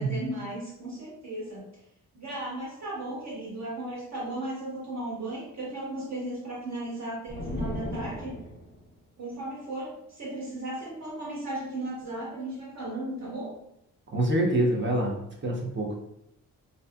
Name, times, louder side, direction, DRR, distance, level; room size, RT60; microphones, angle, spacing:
voice 1, 0.0-1.6 2.1-8.3 9.2-13.6, right 1 dB, 50° right, -5 dB, 1.4 m, -36 dB
sound 1, 7.3-8.9, left 1 dB, 30° left, 0.6 m, -35 dB
voice 2, 14.1-15.9, right 1 dB, 35° right, -1 dB, 0.7 m, -26 dB
2.6 x 2.3 x 2.2 m, 0.77 s
cardioid pair, 70°, 34 cm